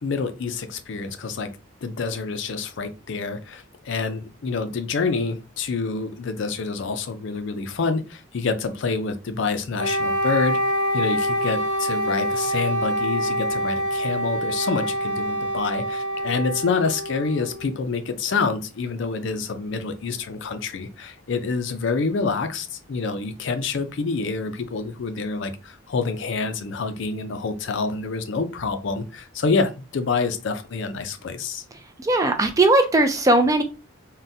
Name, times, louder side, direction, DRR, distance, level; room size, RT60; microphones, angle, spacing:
voice 1, 0.0-1.5 1.8-10.6 10.9-31.6, left 4 dB, 60° left, 9 dB, 0.4 m, -27 dB
Wind instrument woodwind instrument, 9.8-17.8, equal, 90° right, 1.2 m, -26 dB
voice 2, 32.0-33.6, right 2 dB, 15° right, 6 dB, 0.3 m, -18 dB
3.8 x 2.1 x 2.6 m, 0.31 s
head